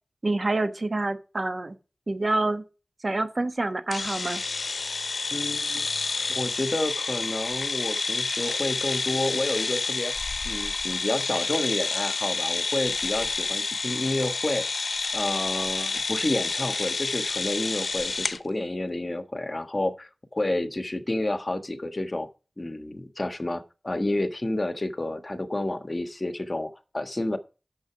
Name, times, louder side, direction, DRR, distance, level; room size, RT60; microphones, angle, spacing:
voice 1, 0.2-1.7 2.1-2.6 3.0-4.4, right 2 dB, 50° right, 1.2 m, -27 dB
sound 1, 3.9-18.4, left 4 dB, 75° left, 0.7 m, -29 dB
voice 2, 5.3-5.9 6.3-10.1 10.4-14.7 15.1-22.3 22.6-27.4, left 1 dB, 40° left, 1.4 m, -30 dB
9.4 x 6.9 x 5.7 m
cardioid pair, 45°, 0 cm